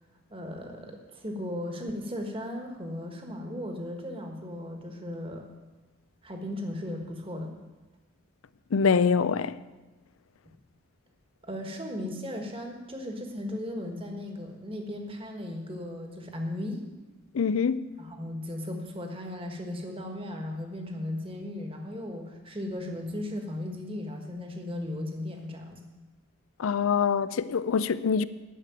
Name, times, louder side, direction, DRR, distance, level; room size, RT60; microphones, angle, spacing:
voice 1, 0.3-5.4 6.2-7.5 11.4-16.8 18.0-25.8, left 1 dB, 25° right, 1.5 m, -36 dB
voice 2, 8.7-9.5 17.3-17.9 26.6-28.2, left 6 dB, 85° left, 0.5 m, -24 dB
11.0 x 6.7 x 8.9 m
head